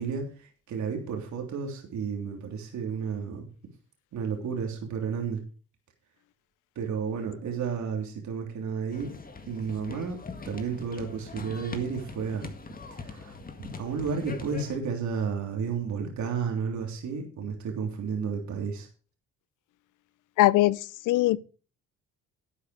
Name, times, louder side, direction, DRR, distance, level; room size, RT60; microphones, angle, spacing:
voice 1, 0.0-3.4 4.1-5.4 6.7-9.1 9.5-10.2 10.4-12.5 12.9-18.9, right 6 dB, 70° right, 3.2 m, -32 dB
sound 1, 8.9-14.8, left 4 dB, 30° left, 1.9 m, -42 dB
voice 2, 20.4-21.4, left 17 dB, 90° left, 0.6 m, -21 dB
11.5 x 8.6 x 5.0 m
cardioid pair, 90°, 30 cm